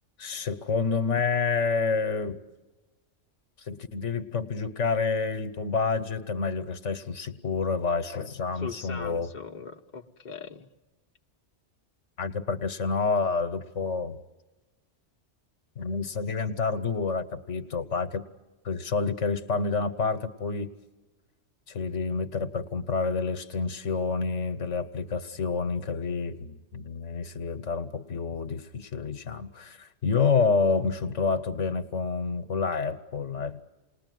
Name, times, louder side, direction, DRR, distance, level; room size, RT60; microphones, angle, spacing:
voice 1, 0.2-2.4 3.6-9.3 12.2-14.2 15.8-18.2 18.6-20.7 21.7-33.6, left 4 dB, 75° left, 10 dB, 1.5 m, -28 dB
voice 2, 8.6-10.7, left 6 dB, 40° left, 2 dB, 1.3 m, -40 dB
28.5 x 20.0 x 9.3 m, 1.2 s
omnidirectional pair, 1.3 m